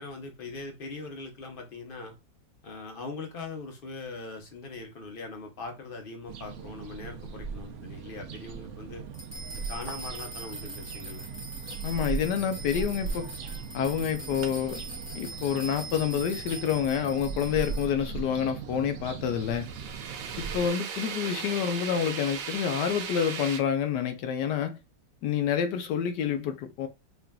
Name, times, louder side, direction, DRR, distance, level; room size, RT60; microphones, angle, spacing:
voice 1, 0.0-2.1 2.6-9.0 9.7-11.3, left 3 dB, 45° left, 0.8 m, -41 dB
sound 1, 6.3-20.7, right 5 dB, 70° right, 0.7 m, -39 dB
sound 2, 9.1-17.8, right 2 dB, 10° left, 0.9 m, -42 dB
voice 2, 11.8-13.3 13.7-14.8 15.1-19.7 20.4-24.8 25.2-26.9, left 8 dB, 80° left, 1.3 m, -28 dB
sound 3, 14.4-14.5 19.2-23.6, right 7 dB, 90° right, 1.3 m, -37 dB
5.7 x 2.5 x 2.2 m
omnidirectional pair, 1.8 m